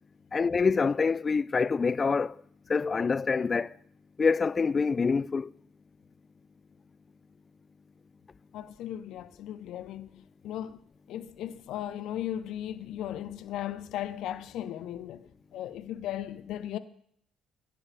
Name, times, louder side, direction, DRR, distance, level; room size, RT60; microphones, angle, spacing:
voice 1, 0.3-2.4 2.7-3.7 4.2-5.5, left 5 dB, 35° left, 0.4 m, -26 dB
voice 2, 8.5-10.8 11.1-16.8, left 11 dB, 65° left, 0.8 m, -37 dB
19.0 x 9.8 x 3.4 m
hypercardioid pair, 50°, 0 cm